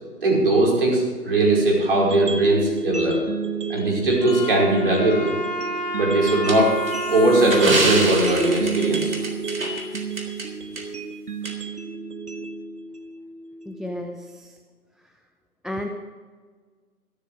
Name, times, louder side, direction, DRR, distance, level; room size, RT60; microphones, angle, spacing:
voice 1, 0.2-3.2 3.7-5.3 5.9-6.7 7.1-9.1, right 2 dB, 35° right, -2 dB, 5.3 m, -19 dB
sound 1, 1.9-14.0, right 4 dB, 75° right, 1.8 m, -30 dB
Wind instrument woodwind instrument, 4.2-9.3, right 1 dB, 30° left, 1.5 m, -30 dB
sound 2, 6.5-10.5 10.8-10.9 11.5-11.6, right 2 dB, 60° right, 3.7 m, -27 dB
voice 2, 13.7-14.5 15.6-15.9, left 1 dB, ahead, 3 dB, 0.4 m, -32 dB
14.5 x 13.5 x 4.8 m, 1.5 s
figure-of-eight pair, 165°, 46 cm